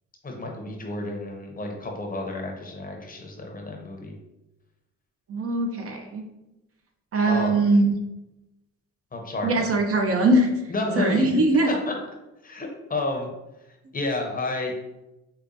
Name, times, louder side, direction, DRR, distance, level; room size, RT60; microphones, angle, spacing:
voice 1, 0.2-4.1 7.3-7.6 9.1-9.7 10.7-11.3 11.8-11.9 12.4-13.3 13.9-14.7, left 2 dB, 30° left, 1 dB, 0.7 m, -30 dB
voice 2, 5.3-6.2 7.1-7.9 9.4-10.5 11.0-11.8, right 2 dB, 50° right, 3 dB, 0.7 m, -21 dB
4.8 x 2.2 x 2.6 m, 0.96 s
cardioid pair, 90°, 30 cm